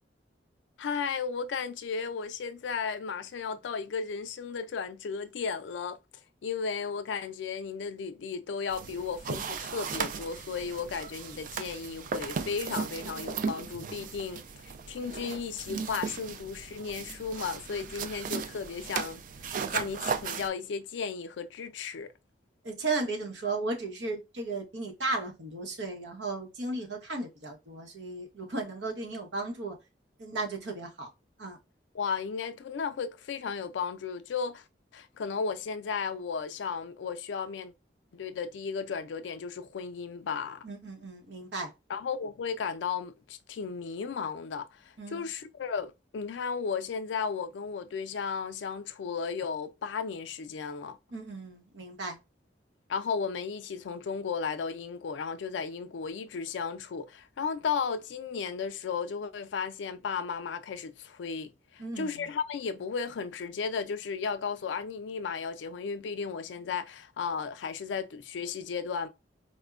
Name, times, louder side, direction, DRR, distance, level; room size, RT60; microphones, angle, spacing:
voice 1, 0.8-6.0 6.4-22.1 31.9-34.6 34.9-37.7 38.1-40.7 41.9-51.0 52.9-69.1, left 5 dB, 90° left, 0.4 m, -35 dB
sound 1, 8.7-20.5, right 6 dB, 50° right, 0.3 m, -36 dB
voice 2, 22.6-29.8 30.2-31.1 31.4-31.6 40.6-41.7 45.0-45.3 51.1-52.2 61.8-62.3, right 3 dB, 80° right, 0.9 m, -35 dB
4.2 x 2.1 x 2.4 m
head